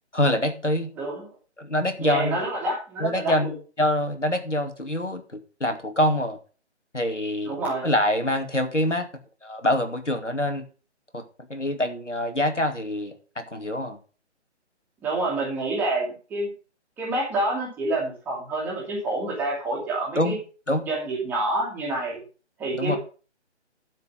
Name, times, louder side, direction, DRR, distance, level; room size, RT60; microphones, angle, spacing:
voice 1, 0.1-0.9 1.6-2.4 3.0-3.5 3.8-6.4 6.9-7.5 7.8-9.1 9.4-10.6 11.1-11.2 11.5-14.0 20.2-20.4 20.7-20.8 22.8-23.0, left 1 dB, 85° left, 6 dB, 2.6 m, -25 dB
voice 2, 1.0-1.3 2.0-3.5 7.4-7.9 15.0-16.5 17.0-20.4 20.8-22.2 22.6-23.0, right 2 dB, 5° right, -3 dB, 1.9 m, -28 dB
12.0 x 5.1 x 6.7 m, 0.36 s
figure-of-eight pair, 150°, 35 cm